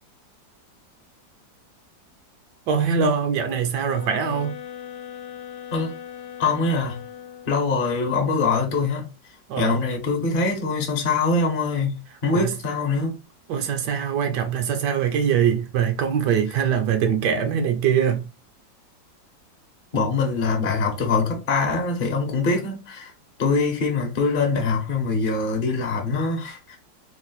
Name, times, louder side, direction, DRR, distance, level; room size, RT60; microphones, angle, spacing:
voice 1, 2.7-4.6 9.5-9.8 12.3-12.5 13.5-18.2, right 7 dB, 75° right, 1.1 m, -23 dB
sound 1, 3.8-7.7, left 10 dB, 75° left, 1.2 m, -39 dB
voice 2, 6.4-7.0 7.4-9.1 9.6-11.9 12.2-13.1 19.9-23.1 23.4-26.8, left 4 dB, 45° left, 0.7 m, -23 dB
3.2 x 2.4 x 3.9 m
omnidirectional pair, 2.0 m